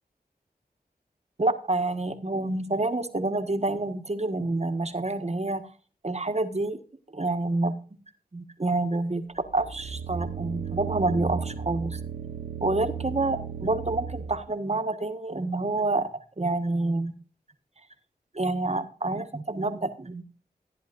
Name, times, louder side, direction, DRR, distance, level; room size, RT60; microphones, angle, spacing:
voice 1, 1.4-5.7 6.0-6.8 7.1-7.7 8.3-12.0 12.6-17.1 18.3-20.2, right 2 dB, 40° right, 8 dB, 1.4 m, -28 dB
sound 1, 9.4-14.5, right 6 dB, 70° right, 0.7 m, -34 dB
14.5 x 10.0 x 2.5 m, 0.39 s
cardioid pair, 40°, 17 cm